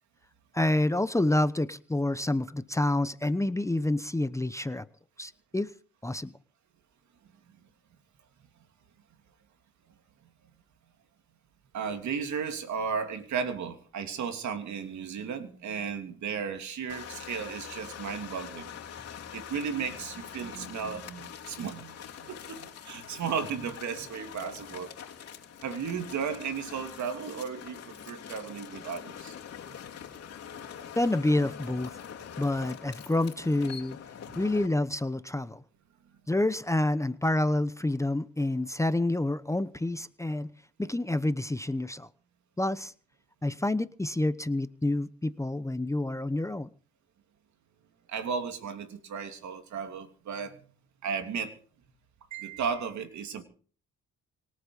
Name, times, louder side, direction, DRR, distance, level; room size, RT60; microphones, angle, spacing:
voice 1, 0.5-4.9 5.2-5.7 6.0-6.3 31.0-32.0 32.4-34.0 34.4-35.6 36.3-40.5 40.8-42.1 42.6-42.9 43.4-46.7, left 1 dB, 10° left, 13 dB, 0.9 m, -28 dB
voice 2, 11.7-18.8 19.3-25.1 25.6-29.3 29.7-29.8 34.3-34.4 48.1-50.7 51.0-51.5 52.3-53.4, right 6 dB, 70° right, 7 dB, 3.0 m, -35 dB
sound 1, 16.9-34.7, left 8 dB, 55° left, 3.4 m, -44 dB
25.0 x 8.4 x 5.5 m, 0.43 s
cardioid pair, 90°, 30 cm